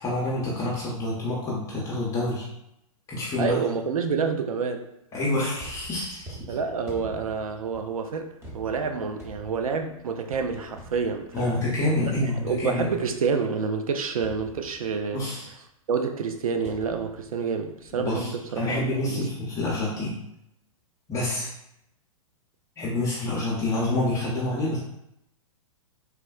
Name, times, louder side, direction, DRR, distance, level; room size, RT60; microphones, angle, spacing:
voice 1, 0.0-2.5 3.1-3.6 5.1-6.4 11.3-12.9 15.1-15.5 18.0-20.2 21.1-21.5 22.8-24.8, left 2 dB, 20° left, -6 dB, 0.6 m, -27 dB
voice 2, 3.4-4.9 6.5-11.6 12.0-12.1 12.4-15.2 15.9-18.8 19.1-19.3, right 5 dB, 85° right, 6 dB, 0.4 m, -28 dB
sound 1, 5.5-13.5 14.2-15.2 16.6-17.9 18.2-18.6, right 2 dB, 15° right, 0.7 m, -46 dB
3.4 x 2.1 x 2.3 m, 0.81 s
hypercardioid pair, 125°, 18 cm